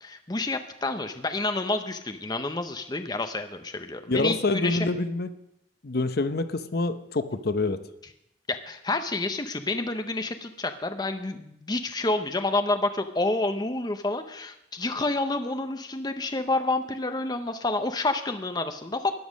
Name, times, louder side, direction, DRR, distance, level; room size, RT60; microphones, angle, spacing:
voice 1, 0.0-4.9 8.5-19.1, left 2 dB, 20° left, 7 dB, 0.7 m, -29 dB
voice 2, 4.1-5.3 5.8-7.8, left 2 dB, 55° left, 11 dB, 0.7 m, -26 dB
12.5 x 10.0 x 6.3 m, 0.80 s
head